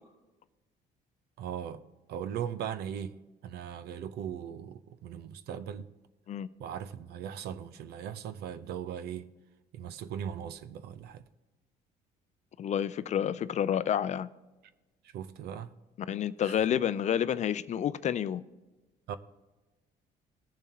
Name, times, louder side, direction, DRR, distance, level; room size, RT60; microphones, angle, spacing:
voice 1, 1.4-1.8 2.1-5.9 6.6-9.3 9.7-11.2 15.0-15.8 16.4-16.6 19.1-19.2, right 9 dB, 70° right, 0.6 m, -39 dB
voice 2, 12.6-14.3 16.0-18.4, left 9 dB, 45° left, 0.5 m, -29 dB
21.0 x 7.1 x 2.9 m
cardioid pair, 110°, 17 cm